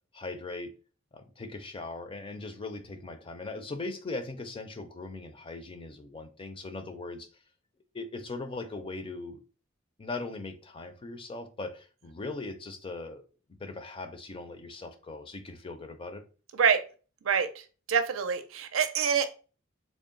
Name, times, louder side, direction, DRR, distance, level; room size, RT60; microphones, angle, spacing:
voice 1, 0.1-0.7 1.1-7.3 7.9-9.4 10.0-13.2 13.6-16.2, left 3 dB, 25° left, 7 dB, 0.4 m, -39 dB
voice 2, 16.5-16.8 17.2-17.5 17.9-19.3, right 7 dB, 90° right, 9 dB, 0.5 m, -25 dB
3.6 x 2.0 x 3.7 m, 0.36 s
head